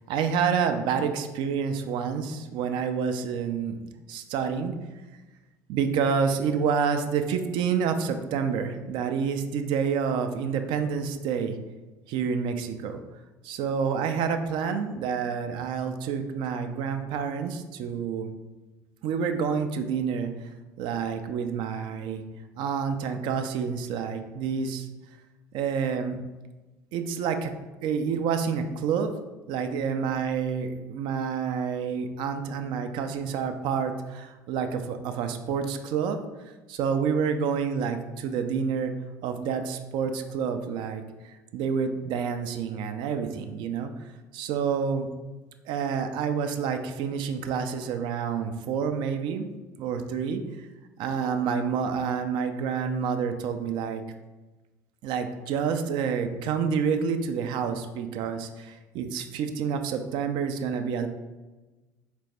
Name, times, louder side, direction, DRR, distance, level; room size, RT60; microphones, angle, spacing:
voice 1, 0.1-3.7 4.1-4.8 5.7-11.6 12.1-13.0 13.4-18.3 19.0-20.3 20.8-22.2 22.6-24.9 25.5-26.2 26.9-27.5 27.8-29.1 29.5-36.2 36.7-38.9 39.2-43.9 44.3-45.1 45.7-49.5 49.8-50.4 51.0-54.0 55.0-61.1, right 6 dB, 55° right, 7 dB, 0.4 m, -28 dB
4.1 x 3.3 x 3.2 m, 1.2 s
figure-of-eight pair, 65°, 10 cm